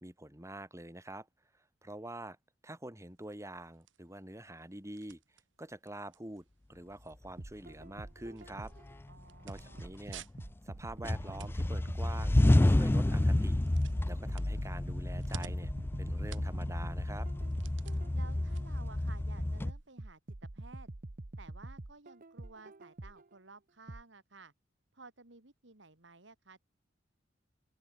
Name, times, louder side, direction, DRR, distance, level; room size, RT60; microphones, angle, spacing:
voice 1, 0.0-1.3 1.8-2.4 2.6-5.2 5.6-8.7 9.4-10.3 10.7-13.6 14.0-15.7 16.0-17.3, right 1 dB, 15° right, 3.2 m, -46 dB
sound 1, 3.0-19.9, right 5 dB, 90° right, 2.5 m, -56 dB
sound 2, 7.4-8.9 9.5-13.7 14.3-18.5 19.1-23.3 23.9-24.0, right 2 dB, 50° right, 1.0 m, -47 dB
sound 3, 7.8-7.9 8.5-9.2 9.6-10.7 11.0-19.7, left 1 dB, 10° left, 0.3 m, -30 dB
voice 2, 9.1-9.9 18.1-20.2 20.5-20.9 21.4-24.5 24.9-26.6, right 3 dB, 70° right, 2.8 m, -55 dB
open air
head